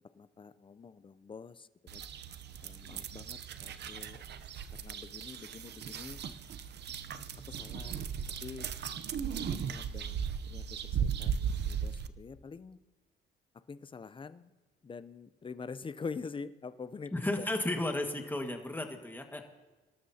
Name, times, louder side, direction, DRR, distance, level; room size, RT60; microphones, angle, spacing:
voice 1, 0.1-2.1 2.6-4.2 4.7-6.2 7.5-8.1 8.4-8.7 9.4-12.8 13.7-14.5 14.8-17.5, left 5 dB, 25° left, 14 dB, 0.6 m, -46 dB
sound 1, 1.9-12.1, right 7 dB, 60° right, 0.7 m, -37 dB
voice 2, 17.1-19.4, left 1 dB, 10° left, 4 dB, 1.7 m, -34 dB
24.5 x 12.5 x 2.8 m, 1.2 s
cardioid pair, 90°, 20 cm